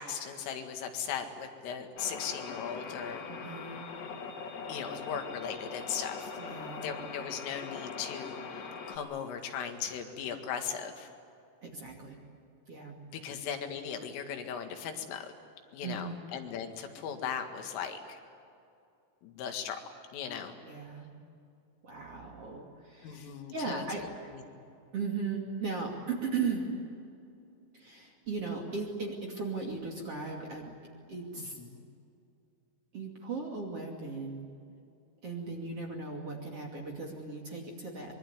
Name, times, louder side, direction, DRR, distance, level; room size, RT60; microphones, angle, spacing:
voice 1, 0.0-3.2 4.7-6.3 6.8-11.1 13.1-15.3 15.7-18.2 19.2-19.8 20.1-20.6 23.0-23.8 24.3-24.4 31.4-31.9, left 7 dB, 85° left, 5 dB, 4.6 m, -38 dB
sound 1, 2.0-9.0, left 5 dB, 60° left, 4.3 m, -41 dB
voice 2, 3.3-3.9 6.4-6.9 11.6-12.2 12.7-12.9 13.2-13.3 15.8-16.3 20.6-21.1 21.8-24.0 24.9-26.7 27.7-30.7 31.1-31.6 32.9-34.4 35.2-38.1, right 4 dB, 35° right, 0 dB, 2.8 m, -37 dB
24.5 x 23.5 x 9.8 m, 2.6 s
omnidirectional pair, 5.7 m